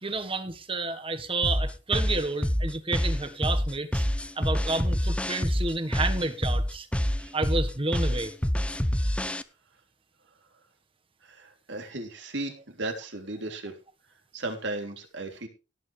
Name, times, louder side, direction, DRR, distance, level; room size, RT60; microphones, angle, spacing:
voice 1, 0.0-4.0 4.3-6.9 7.3-8.3, right 3 dB, 30° right, 1.5 m, -30 dB
sound 1, 1.4-9.4, equal, 5° left, 0.6 m, -26 dB
voice 2, 11.2-13.7 14.3-15.5, right 2 dB, 75° right, 3.3 m, -35 dB
17.5 x 9.3 x 3.4 m
head